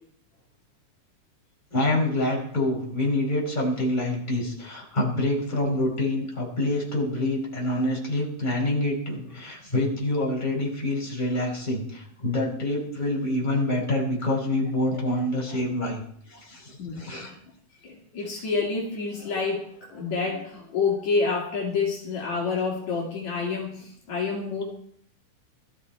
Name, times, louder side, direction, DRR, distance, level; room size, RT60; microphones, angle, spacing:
voice 1, 1.7-16.0 16.3-17.3, left 1 dB, 15° left, -3 dB, 5.0 m, -26 dB
voice 2, 16.8-17.4 17.8-24.6, left 4 dB, 65° left, -2 dB, 3.8 m, -28 dB
21.5 x 14.0 x 4.4 m, 0.65 s
omnidirectional pair, 3.6 m